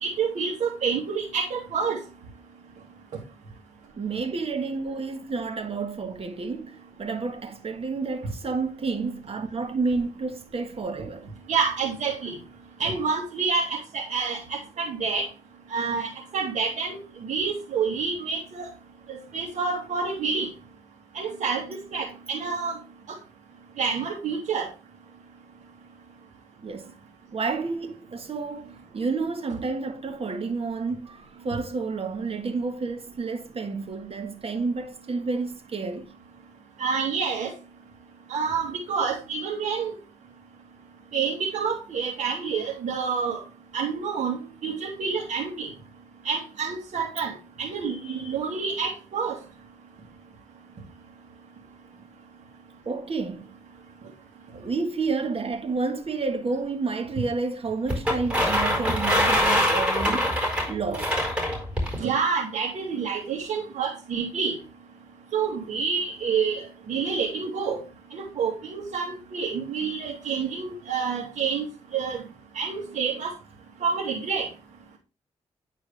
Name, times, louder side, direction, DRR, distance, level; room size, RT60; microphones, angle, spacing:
voice 1, 0.0-2.0 11.5-12.4 12.8-15.3 15.7-18.7 19.1-20.5 21.1-21.6 21.9-22.8 23.1-23.2 23.8-24.7 36.8-37.5 38.3-39.9 41.1-43.4 43.7-45.7 46.2-47.3 47.6-49.4 62.0-64.6 65.3-66.6 66.9-67.8 68.1-71.7 71.9-72.2 72.5-73.3 73.8-74.5, right 5 dB, 75° right, 2.1 m, -28 dB
voice 2, 4.0-11.3 26.6-26.9 27.3-36.1 52.8-53.6 54.5-60.4 60.7-61.2, right 4 dB, 50° right, 1.5 m, -30 dB
sound 1, 57.9-62.0, equal, 10° right, 4.4 m, -24 dB
9.4 x 4.6 x 3.3 m
cardioid pair, 65°, 12 cm